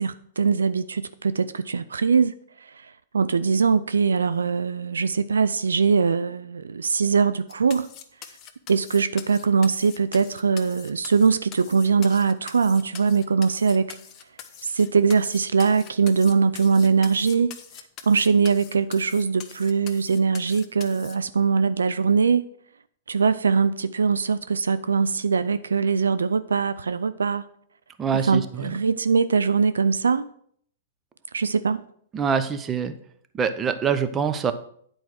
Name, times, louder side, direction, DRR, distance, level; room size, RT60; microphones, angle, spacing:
voice 1, 0.0-2.3 2.8-7.9 8.7-14.0 14.6-17.5 18.1-22.4 23.1-27.4 28.3-30.3 31.3-31.8, right 5 dB, 85° right, 0.4 m, -22 dB
sound 1, 7.5-21.2, left 9 dB, 35° left, 0.9 m, -43 dB
voice 2, 28.0-28.8 32.1-32.9 33.3-34.5, right 6 dB, 20° right, 0.8 m, -25 dB
8.8 x 4.7 x 6.2 m
hypercardioid pair, 115°, 0 cm